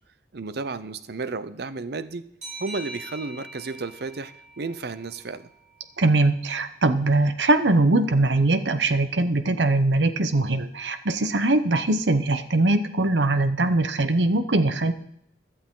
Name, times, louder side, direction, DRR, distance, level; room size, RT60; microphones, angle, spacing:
voice 1, 0.3-2.2 2.6-5.5, right 3 dB, 65° right, 14 dB, 0.7 m, -33 dB
sound 1, 2.4-5.7, right 1 dB, 45° right, 6.2 m, -42 dB
voice 2, 6.0-14.9, right 2 dB, 85° right, 10 dB, 1.0 m, -21 dB
15.5 x 11.5 x 3.8 m, 0.74 s
head